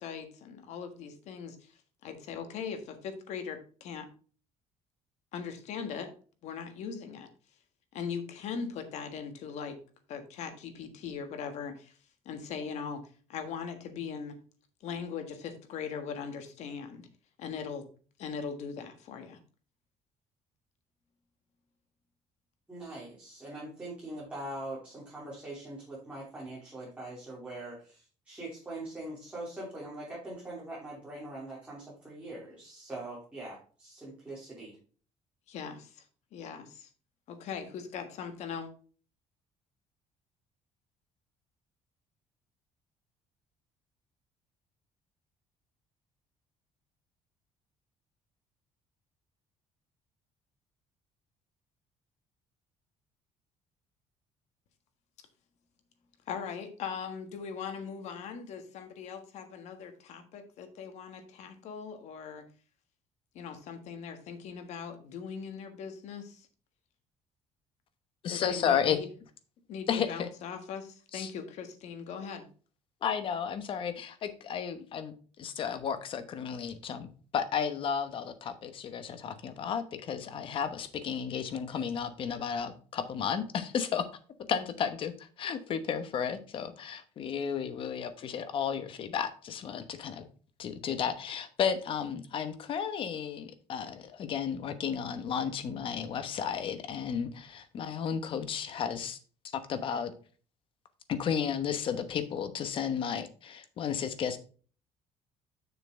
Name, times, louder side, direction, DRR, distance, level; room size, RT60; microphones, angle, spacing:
voice 1, 0.0-1.7 2.0-4.1 5.3-6.1 6.4-7.3 7.9-9.8 10.1-11.9 12.2-14.4 14.8-17.1 17.4-17.9 18.2-19.4 35.5-36.0 36.3-36.9 37.3-38.7 56.3-62.5 63.3-66.5 68.3-69.1 69.7-72.5, left 6 dB, 65° left, 7 dB, 1.6 m, -40 dB
voice 2, 22.7-34.8, right 1 dB, 10° right, -7 dB, 3.1 m, -42 dB
voice 3, 68.2-69.0 69.9-70.3 71.1-71.3 73.0-77.1 77.3-84.1 84.5-90.3 90.6-99.2 99.5-100.1 101.1-104.4, left 7 dB, 45° left, 10 dB, 1.0 m, -33 dB
6.8 x 6.6 x 3.7 m, 0.39 s
cardioid pair, 160°, 12 cm